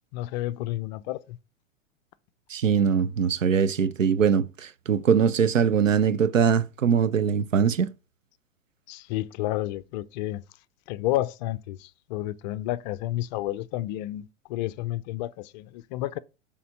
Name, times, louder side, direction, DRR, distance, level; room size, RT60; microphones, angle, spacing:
voice 1, 0.1-1.4 8.9-10.4 10.9-16.2, left 15 dB, 35° left, 0.5 m, -31 dB
voice 2, 2.5-7.9, right 7 dB, 80° right, 0.8 m, -22 dB
6.8 x 3.6 x 6.3 m
hypercardioid pair, 110°, 38 cm